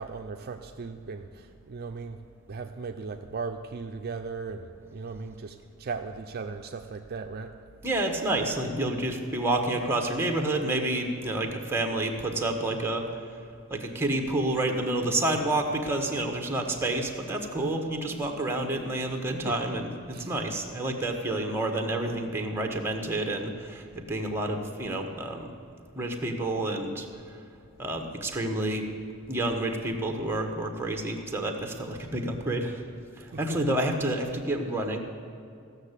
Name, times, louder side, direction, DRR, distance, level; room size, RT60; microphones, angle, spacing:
voice 1, 0.0-2.2 2.5-7.5 19.5-19.6 20.1-20.3 33.3-33.6, right 4 dB, 45° right, 5 dB, 0.5 m, -37 dB
voice 2, 7.8-13.1 13.7-25.5 25.9-27.1 27.8-28.9 29.3-32.8 33.2-35.0, right 1 dB, 10° right, 3 dB, 1.2 m, -29 dB
15.0 x 6.6 x 8.2 m, 2.4 s
head